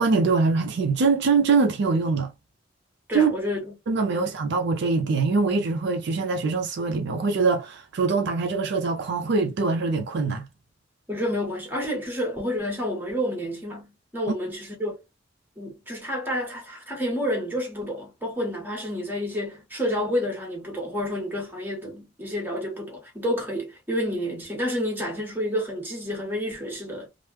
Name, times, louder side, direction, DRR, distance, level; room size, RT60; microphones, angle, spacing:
voice 1, 0.0-2.3 3.1-3.3 3.9-10.5, right 4 dB, 65° right, 0.4 m, -23 dB
voice 2, 3.1-3.7 4.1-4.3 11.1-14.9 15.6-27.1, equal, 10° right, 1.3 m, -29 dB
3.2 x 2.0 x 3.1 m
head